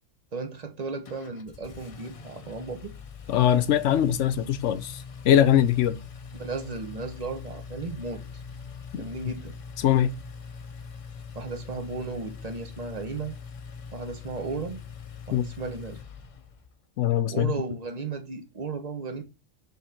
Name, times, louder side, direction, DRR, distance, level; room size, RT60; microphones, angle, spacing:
voice 1, 0.3-2.9 6.3-8.2 8.9-9.5 11.3-13.3 13.9-14.8 15.3-16.0 17.3-19.2, right 4 dB, 35° right, 0.9 m, -35 dB
Engine, 1.0-16.8, left 6 dB, 50° left, 0.4 m, -42 dB
voice 2, 3.3-6.0 8.9-9.0 9.8-10.1 15.3-15.4 17.0-17.5, left 10 dB, 70° left, 1.0 m, -22 dB
5.7 x 3.1 x 5.7 m
omnidirectional pair, 1.3 m